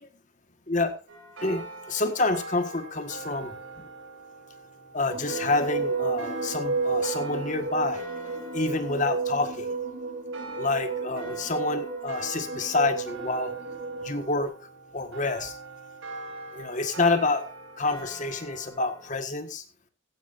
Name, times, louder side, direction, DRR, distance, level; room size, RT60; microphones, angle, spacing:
sound 1, 1.1-19.1, right 2 dB, 85° right, 5.2 m, -43 dB
voice 1, 1.4-3.5 4.9-8.1 8.5-9.7 10.6-13.5 14.0-14.5 14.9-15.5 16.5-17.4 17.8-19.6, left 3 dB, 40° left, 8 dB, 1.6 m, -28 dB
sound 2, 5.1-14.4, right 4 dB, 45° right, 2.1 m, -32 dB
15.5 x 15.5 x 2.6 m, 0.31 s
head